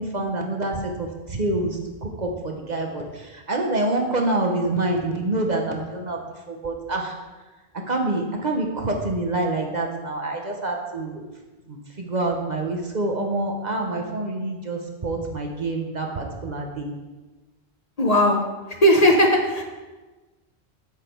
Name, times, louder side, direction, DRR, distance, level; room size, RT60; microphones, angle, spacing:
voice 1, 0.0-6.2 6.5-7.1 7.9-11.2 11.7-16.9, right 2 dB, 45° right, 2 dB, 1.1 m, -26 dB
voice 2, 18.0-18.4 18.8-19.6, equal, 40° left, 1 dB, 1.1 m, -17 dB
8.2 x 7.4 x 4.5 m, 1.2 s
omnidirectional pair, 1.1 m